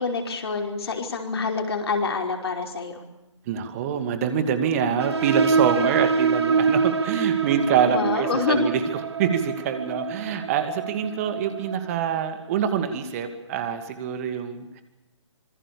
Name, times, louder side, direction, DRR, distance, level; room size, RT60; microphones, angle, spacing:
voice 1, 0.0-3.0 7.9-8.7, left 4 dB, 55° left, 3 dB, 5.3 m, -26 dB
voice 2, 3.5-8.8 9.2-14.8, right 7 dB, 30° right, 9 dB, 2.4 m, -25 dB
sound 1, 5.0-12.3, right 5 dB, 60° right, 1.5 m, -25 dB
26.5 x 20.5 x 7.0 m, 0.97 s
figure-of-eight pair, 140°, 16 cm